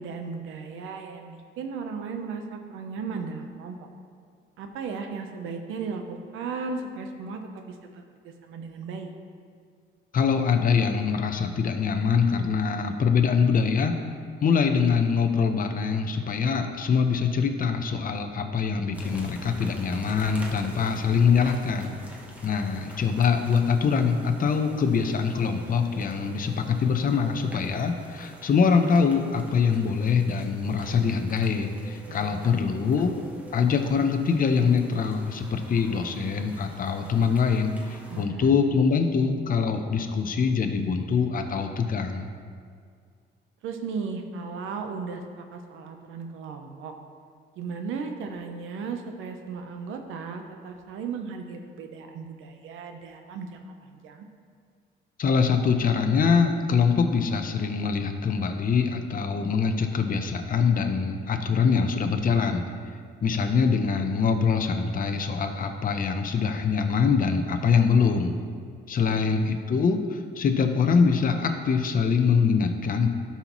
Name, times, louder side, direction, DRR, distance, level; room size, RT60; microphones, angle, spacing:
voice 1, 0.0-3.8 4.6-9.1 32.0-32.6 38.1-38.5 43.6-46.9 47.6-54.3 69.1-69.3, right 5 dB, 85° right, 5 dB, 0.8 m, -36 dB
voice 2, 10.1-14.0 14.4-21.9 22.4-33.1 33.5-42.3 55.2-62.6 63.2-68.3 68.9-73.1, left 5 dB, 45° left, 6 dB, 0.8 m, -24 dB
sound 1, 18.9-38.2, right 1 dB, 5° right, 1.2 m, -46 dB
13.0 x 5.7 x 3.1 m, 2.1 s
cardioid pair, 90°, 20 cm